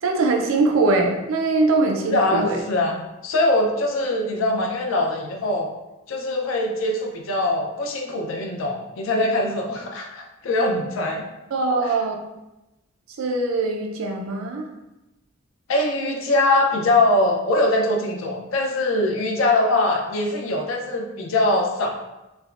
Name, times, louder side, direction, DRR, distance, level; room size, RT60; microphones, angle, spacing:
voice 1, 0.0-2.6 11.1-11.2 11.5-12.1 13.2-14.7, right 3 dB, 85° right, 2 dB, 0.4 m, -22 dB
voice 2, 2.1-3.0 3.2-5.7 6.1-11.2 15.7-21.9, left 2 dB, 75° left, 1 dB, 0.5 m, -22 dB
3.3 x 2.0 x 2.4 m, 0.99 s
head